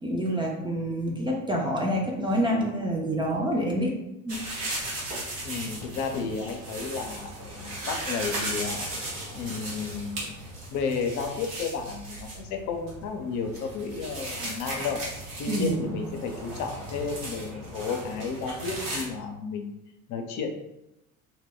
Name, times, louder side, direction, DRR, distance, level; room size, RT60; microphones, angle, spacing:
voice 1, 0.0-3.9 4.2-4.4 15.5-15.9, equal, 15° right, -2 dB, 0.4 m, -27 dB
sound 1, 4.3-19.0, right 1 dB, 80° right, 1.0 m, -36 dB
voice 2, 5.4-8.9 9.3-10.4 10.7-15.0 15.4-19.7 20.1-20.5, left 5 dB, 50° left, 4 dB, 0.5 m, -32 dB
2.2 x 2.1 x 3.7 m, 0.88 s
hypercardioid pair, 60°, 39 cm